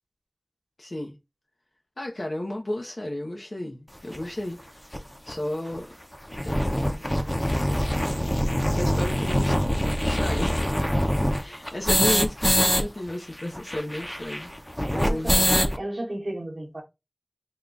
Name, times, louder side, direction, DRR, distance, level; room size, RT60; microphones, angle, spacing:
voice 1, 0.8-1.2 2.0-5.9 6.4-7.4 8.7-9.6 10.0-10.8 11.2-14.5 14.9-15.6, left 1 dB, 70° left, 0.7 m, -33 dB
sound 1, 4.1-4.2 4.9-5.0 5.3-5.4 5.7-5.8 6.1-12.8 13.1-13.2 13.4-15.8, equal, 15° left, 0.5 m, -24 dB
voice 2, 14.9-16.8, right 1 dB, 70° right, 0.9 m, -33 dB
3.6 x 2.3 x 3.8 m
wide cardioid pair, 45°, 0 cm